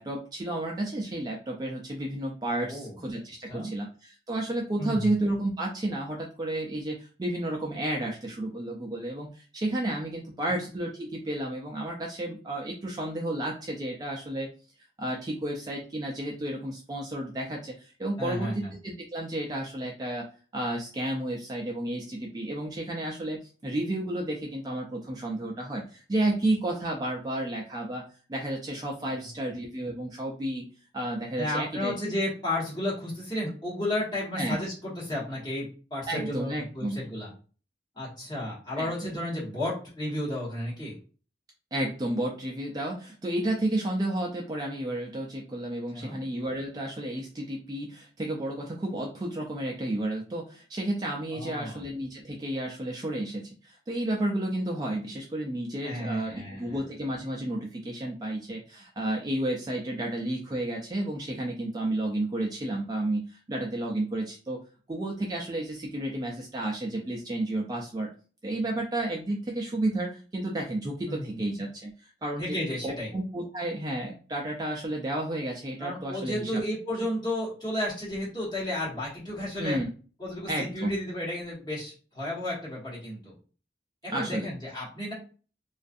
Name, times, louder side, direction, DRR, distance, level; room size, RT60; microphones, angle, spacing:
voice 1, 0.0-14.5 15.0-20.3 20.5-28.0 28.3-30.7 30.9-31.9 34.4-34.6 36.1-37.0 38.8-39.1 41.7-64.6 64.9-68.1 68.4-72.5 72.8-76.6 79.6-79.9 80.5-81.0 84.1-84.5, right 1 dB, 20° right, -1 dB, 0.3 m, -32 dB
voice 2, 2.6-3.0 3.5-3.7 4.8-5.1 10.5-10.6 18.2-18.7 31.4-37.3 38.0-41.0 45.9-46.2 51.3-51.8 55.8-56.8 71.1-71.4 72.4-73.1 75.8-79.8 80.2-83.3 84.0-85.1, left 1 dB, 25° left, -6 dB, 1.0 m, -33 dB
2.4 x 2.3 x 2.5 m, 0.38 s
head